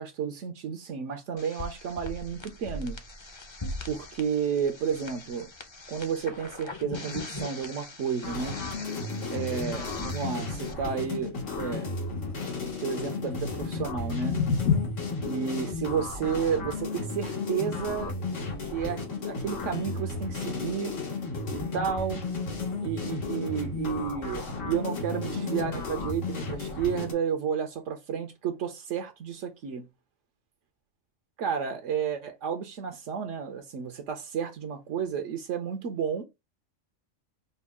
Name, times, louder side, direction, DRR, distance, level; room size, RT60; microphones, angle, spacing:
voice 1, 0.0-3.0 3.9-5.5 5.9-8.6 9.3-11.9 12.6-14.4 15.2-18.3 18.7-21.0 21.5-22.2 22.8-29.9 31.4-36.2, right 7 dB, 80° right, 1.0 m, -32 dB
sound 1, 1.4-10.7, left 1 dB, 30° left, 0.5 m, -41 dB
sound 2, 8.2-27.1, left 3 dB, 85° left, 1.9 m, -34 dB
sound 3, 13.5-19.6, left 6 dB, 70° left, 1.1 m, -33 dB
5.3 x 2.3 x 3.5 m
omnidirectional pair, 1.3 m